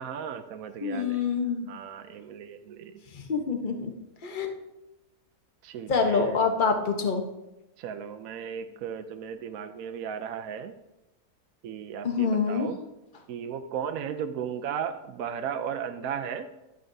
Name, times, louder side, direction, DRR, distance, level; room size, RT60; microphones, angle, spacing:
voice 1, 0.0-1.4 1.7-3.0 5.6-6.4 7.8-10.7 11.6-12.8 13.3-16.5, right 8 dB, 70° right, 6 dB, 0.9 m, -35 dB
voice 2, 0.8-1.7 3.1-3.9 4.2-4.5 5.9-7.2 12.0-12.7, left 5 dB, 35° left, 4 dB, 1.0 m, -26 dB
12.0 x 9.1 x 2.7 m, 0.98 s
omnidirectional pair, 1.7 m